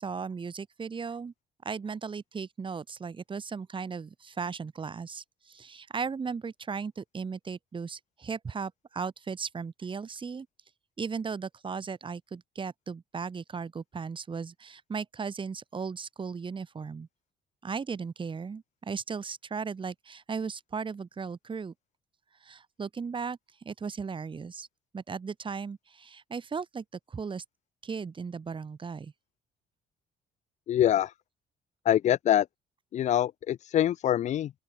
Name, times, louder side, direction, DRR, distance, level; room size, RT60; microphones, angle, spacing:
voice 1, 0.0-1.3 1.7-10.5 11.0-17.1 17.6-21.7 22.4-24.7 24.9-27.4 27.8-29.1, right 5 dB, 30° right, 3.5 m, -36 dB
voice 2, 30.7-31.1 31.9-32.4 32.9-34.5, left 11 dB, 45° left, 0.4 m, -24 dB
open air
cardioid pair, 110°, 17 cm